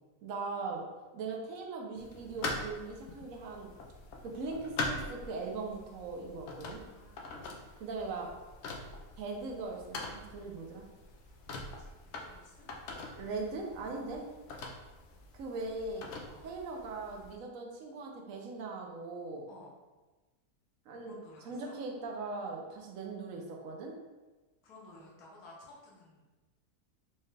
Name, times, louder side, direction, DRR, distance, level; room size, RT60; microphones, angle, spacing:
voice 1, 0.2-0.8 1.1-3.7 4.2-6.8 7.8-8.3 9.2-10.8 13.1-14.2 15.3-16.1 16.4-19.5 20.9-21.2 21.4-23.9, right 3 dB, 65° right, 0 dB, 0.9 m, -40 dB
sound 1, 2.0-17.3, left 2 dB, 90° left, 0.6 m, -43 dB
voice 2, 6.4-7.2 11.6-12.7 16.3-16.4 19.5-19.7 21.1-21.8 24.6-26.2, left 2 dB, 70° left, -4 dB, 1.5 m, -55 dB
4.3 x 2.4 x 3.2 m, 1.2 s
omnidirectional pair, 1.8 m